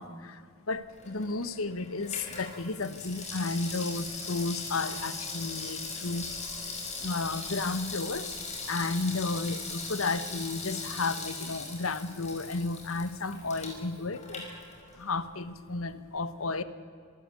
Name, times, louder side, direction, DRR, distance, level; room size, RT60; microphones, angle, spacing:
voice 1, 0.0-6.3 7.0-8.3 8.6-14.4 14.9-16.6, left 3 dB, 85° left, 13 dB, 1.3 m, -33 dB
Water tap faucet / Sink (filling or washing), 0.9-15.2 15.5-15.6, left 3 dB, 35° left, 5.4 m, -40 dB
26.0 x 14.5 x 8.4 m, 2.2 s
head